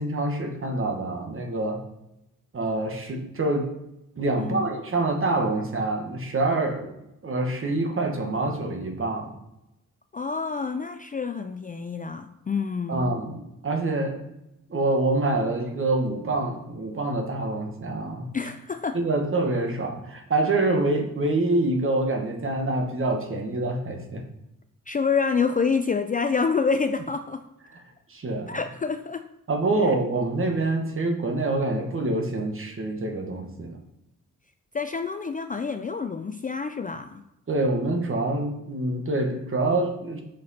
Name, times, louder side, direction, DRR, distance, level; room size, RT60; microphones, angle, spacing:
voice 1, 0.0-1.8 2.5-3.7 4.2-6.9 7.2-9.3 12.9-14.2 14.7-18.3 18.9-24.2 27.7-27.8 28.1-28.6 29.5-33.8 37.5-40.2, right 2 dB, 40° right, 4 dB, 1.3 m, -26 dB
voice 2, 10.1-13.1 18.3-19.0 24.9-27.4 28.5-29.2 34.7-37.2, left 5 dB, 25° left, 8 dB, 0.3 m, -27 dB
6.0 x 4.8 x 4.2 m, 0.88 s
cardioid pair, 90°, 33 cm